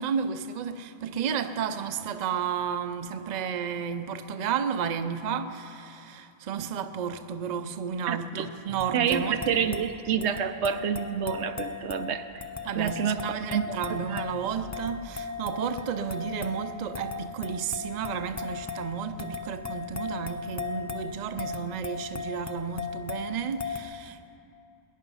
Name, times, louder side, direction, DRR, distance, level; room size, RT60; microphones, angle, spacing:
voice 1, 0.0-9.9 12.6-24.4, right 7 dB, 50° right, 0.6 m, -32 dB
voice 2, 8.1-8.5 8.9-12.4 12.8-13.2 13.5-13.7 14.1-14.2, right 8 dB, 85° right, 0.9 m, -28 dB
sound 1, 8.8-23.8, left 5 dB, 25° left, 0.4 m, -37 dB
19.5 x 10.0 x 5.5 m
omnidirectional pair, 1.1 m